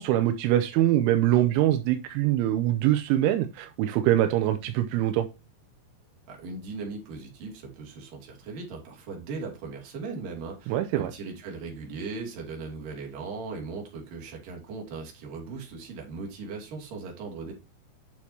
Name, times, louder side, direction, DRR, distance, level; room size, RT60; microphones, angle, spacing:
voice 1, 0.0-5.3 10.7-11.1, right 13 dB, 85° right, 3.1 m, -23 dB
voice 2, 6.3-17.5, right 4 dB, 50° right, 3.7 m, -38 dB
9.9 x 6.3 x 2.8 m
omnidirectional pair, 5.7 m